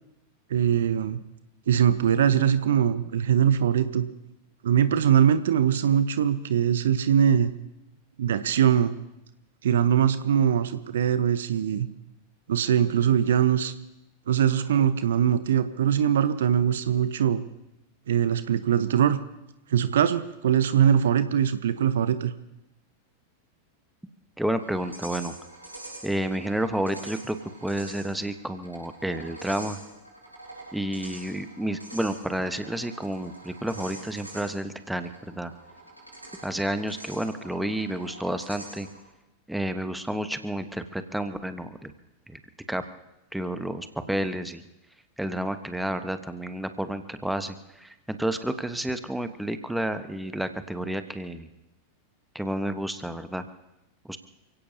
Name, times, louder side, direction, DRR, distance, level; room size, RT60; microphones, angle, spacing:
voice 1, 0.5-1.2 1.7-4.1 4.6-7.5 8.2-8.9 9.6-11.9 12.5-13.7 14.3-17.4 18.1-19.2 19.7-22.3, right 9 dB, 60° right, 13 dB, 0.8 m, -22 dB
voice 2, 24.4-25.3 26.0-29.8 30.7-35.5 36.4-38.9 39.5-41.9 42.3-42.4 42.7-42.8 43.3-44.6 45.2-51.5 52.3-53.4 54.0-54.2, right 1 dB, 5° right, 9 dB, 1.1 m, -30 dB
sound 1, 24.6-39.1, right 1 dB, 85° right, 6.3 m, -45 dB
28.5 x 17.0 x 2.8 m, 0.92 s
figure-of-eight pair, 90°, 0 cm